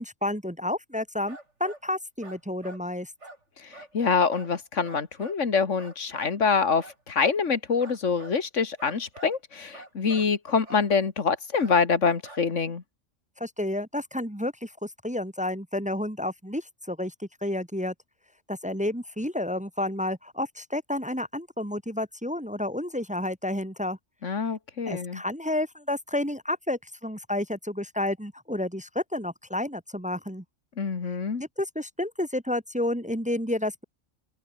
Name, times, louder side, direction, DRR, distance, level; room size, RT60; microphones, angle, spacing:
voice 1, 0.0-3.1 13.4-17.9 18.5-24.0 24.9-30.4 31.6-33.8, left 1 dB, 5° right, 1.0 m, -30 dB
sound 1, 1.3-1.9 2.2-2.8 3.2-3.4 3.7-3.9 4.3-4.5 4.8-5.4 5.8-6.4 6.8-7.4 7.8-8.4 8.8-9.4 9.7-10.3 10.6-10.9 11.6-11.8 12.2-12.6, right 2 dB, 70° right, 5.5 m, -46 dB
voice 2, 3.6-12.8 24.2-25.2 30.8-31.4, left 5 dB, 80° left, 2.2 m, -25 dB
open air
omnidirectional pair, 1.3 m